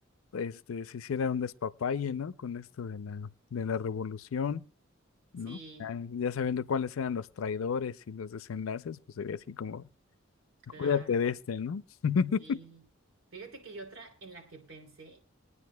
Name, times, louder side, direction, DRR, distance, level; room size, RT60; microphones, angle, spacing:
voice 1, 0.3-4.6 5.3-9.9 10.8-12.6, left 6 dB, 85° left, 0.4 m, -32 dB
voice 2, 5.4-6.0 10.7-11.2 12.4-12.8 13.3-15.2, right 3 dB, 85° right, 2.7 m, -48 dB
22.0 x 9.7 x 2.2 m
head